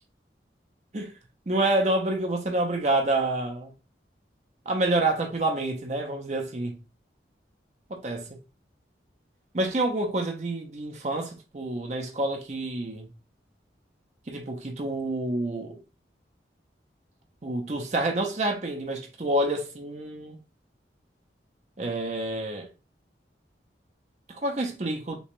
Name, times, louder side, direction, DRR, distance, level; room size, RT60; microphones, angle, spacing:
voice 1, 1.5-3.7 4.7-6.8 7.9-8.3 9.5-13.1 14.3-15.8 17.4-20.4 21.8-22.7 24.3-25.2, right 2 dB, 40° right, 0.7 m, -28 dB
3.3 x 3.0 x 3.1 m
head